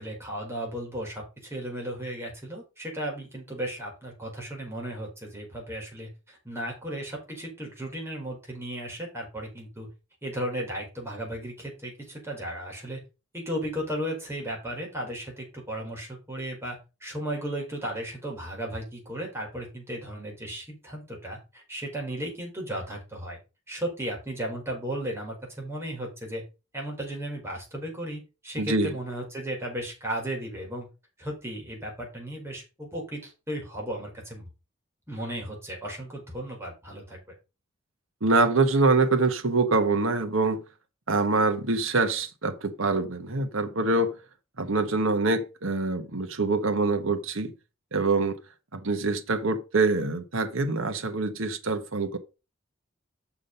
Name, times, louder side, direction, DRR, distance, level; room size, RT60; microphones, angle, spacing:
voice 1, 0.0-9.9 10.2-13.0 13.3-23.4 23.7-26.4 26.7-30.9 31.2-34.5 35.1-37.2, right 1 dB, 15° right, 4.7 m, -35 dB
voice 2, 28.6-28.9 38.2-40.6 41.1-44.1 44.6-47.5 47.9-48.4 48.7-52.2, right 3 dB, 85° right, 1.3 m, -25 dB
7.2 x 6.2 x 5.3 m
head